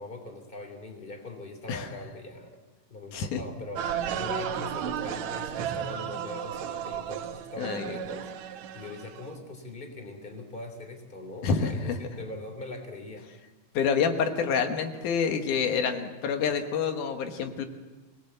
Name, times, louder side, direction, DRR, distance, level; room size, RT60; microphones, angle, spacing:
voice 1, 0.0-2.6 2.9-13.3, left 2 dB, 15° left, 5 dB, 3.1 m, -41 dB
sound 1, 3.7-9.3, right 9 dB, 75° right, 2.2 m, -34 dB
voice 2, 7.6-8.0 11.4-12.0 13.7-17.7, left 6 dB, 90° left, 6 dB, 3.0 m, -27 dB
24.5 x 18.5 x 7.9 m, 1.3 s
omnidirectional pair, 3.5 m